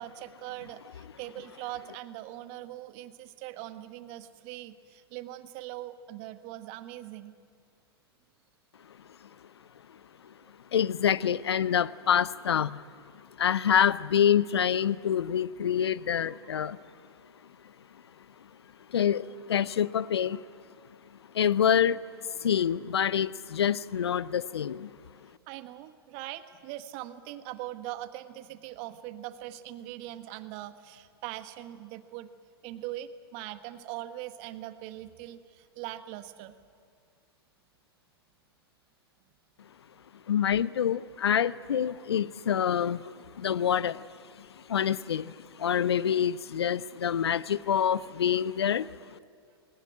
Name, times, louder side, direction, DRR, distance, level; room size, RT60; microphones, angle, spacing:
voice 1, 0.0-7.3 25.5-32.3 32.6-36.5, right 14 dB, 45° right, 11 dB, 1.3 m, -41 dB
voice 2, 10.7-12.8 13.4-16.8 18.9-20.4 21.3-22.0 22.4-24.9 40.3-44.0 44.7-48.9, left 9 dB, 75° left, 20 dB, 0.6 m, -26 dB
20.0 x 19.5 x 8.8 m, 2.1 s
figure-of-eight pair, 100°, 14 cm